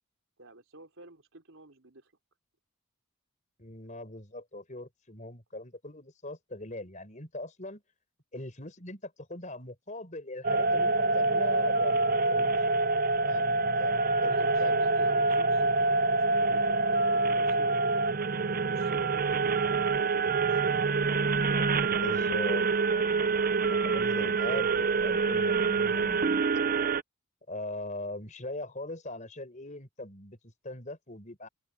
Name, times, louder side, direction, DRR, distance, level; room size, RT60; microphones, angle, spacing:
voice 1, 0.4-2.1 14.2-17.9 18.6-21.0, right 2 dB, 65° right, 3.9 m, -52 dB
voice 2, 3.6-7.8 8.3-12.7 13.2-15.0 21.9-23.3 23.7-26.4 27.5-31.5, left 2 dB, 35° left, 4.7 m, -41 dB
sound 1, 10.4-27.0, right 3 dB, 40° right, 0.7 m, -26 dB
open air
head